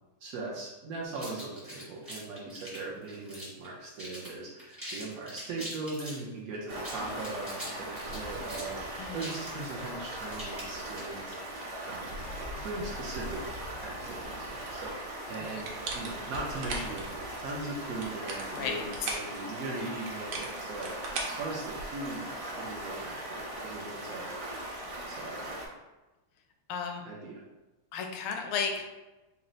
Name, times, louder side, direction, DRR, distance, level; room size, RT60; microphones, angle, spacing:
voice 1, 0.2-11.4 11.8-12.3 12.6-24.3 25.1-25.6 27.0-27.4, right 2 dB, 85° right, -4 dB, 0.7 m, -40 dB
sound 1, 1.1-3.7 4.0-4.3 4.6-6.2 6.7-11.3, equal, 20° right, 0.3 m, -43 dB
Stream, 6.7-25.7, right 1 dB, 55° right, 0.8 m, -39 dB
sound 2, 15.6-17.1 17.8-19.3 20.1-22.1, right 3 dB, 70° right, 1.4 m, -38 dB
voice 2, 18.5-19.2 26.7-27.0 27.9-28.8, left 6 dB, 80° left, 3 dB, 1.4 m, -34 dB
4.2 x 2.0 x 3.8 m, 1.1 s
omnidirectional pair, 2.4 m